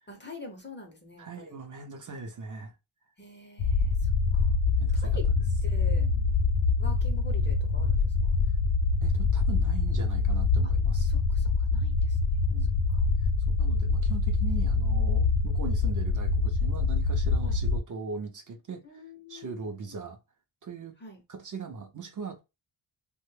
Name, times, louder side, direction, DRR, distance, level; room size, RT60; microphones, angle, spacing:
voice 1, 0.1-1.6 3.2-4.5 4.9-5.3 5.6-6.0 6.8-8.4 11.0-12.2 12.9-13.1 17.5-17.6 18.8-20.0 21.0-21.2, left 1 dB, 25° left, 0.5 m, -46 dB
voice 2, 1.2-2.8 4.8-5.2 6.0-6.3 9.0-11.1 12.5-12.8 13.2-19.0 19.3-20.2 20.6-20.9 21.3-22.4, right 4 dB, 40° right, 0.5 m, -40 dB
sound 1, 3.6-17.8, left 4 dB, 80° left, 0.6 m, -25 dB
2.9 x 2.2 x 3.1 m
wide cardioid pair, 130°, 49 cm